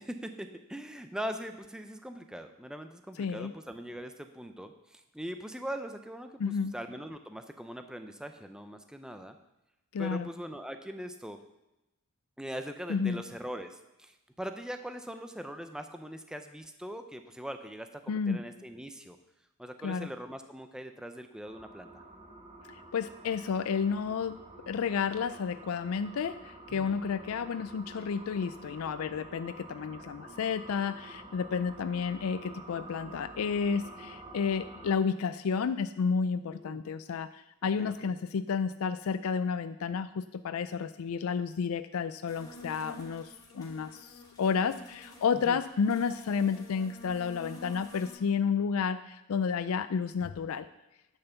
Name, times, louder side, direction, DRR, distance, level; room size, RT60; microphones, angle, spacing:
voice 1, 0.0-9.4 10.0-11.4 12.4-19.2 19.6-22.0 26.7-27.0 36.5-36.8 37.8-38.1 45.4-45.6, equal, 5° right, 7 dB, 0.5 m, -41 dB
voice 2, 3.2-3.5 6.4-6.7 9.9-10.3 12.9-13.2 18.1-18.4 19.8-20.1 22.7-24.4 24.7-50.7, left 6 dB, 70° left, 12 dB, 0.4 m, -31 dB
sound 1, 21.4-34.9, right 2 dB, 25° right, 1.4 m, -49 dB
sound 2, 42.3-48.1, left 1 dB, 15° left, 2.1 m, -50 dB
10.5 x 5.7 x 6.9 m, 0.95 s
head